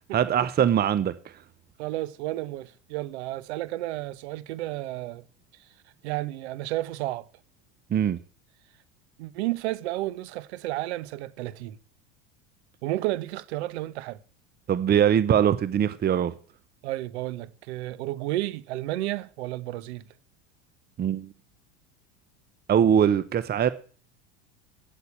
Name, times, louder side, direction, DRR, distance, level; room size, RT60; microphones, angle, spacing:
voice 1, 0.1-1.1 7.9-8.2 14.7-16.3 21.0-21.3 22.7-23.7, right 9 dB, 30° right, 0.9 m, -22 dB
voice 2, 1.8-5.2 6.0-7.3 9.2-11.8 12.8-14.2 16.8-20.0, right 16 dB, 75° right, 1.2 m, -32 dB
9.1 x 7.9 x 8.6 m
supercardioid pair, 100°, 33 cm